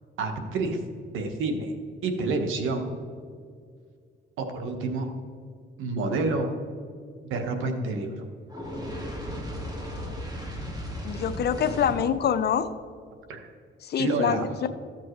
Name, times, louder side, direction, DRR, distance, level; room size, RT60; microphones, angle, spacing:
voice 1, 0.2-0.8 1.1-1.7 2.0-2.9 4.4-5.1 5.8-6.5 7.2-8.2 13.3-13.5 14.0-14.4, right 3 dB, 85° right, 5 dB, 1.2 m, -28 dB
Fire, 8.5-12.2, equal, 20° right, 1.9 m, -35 dB
voice 2, 11.0-12.7 13.8-14.5, left 8 dB, 55° left, 11 dB, 0.6 m, -25 dB
14.0 x 7.5 x 3.2 m, 2.1 s
cardioid pair, 90°, 20 cm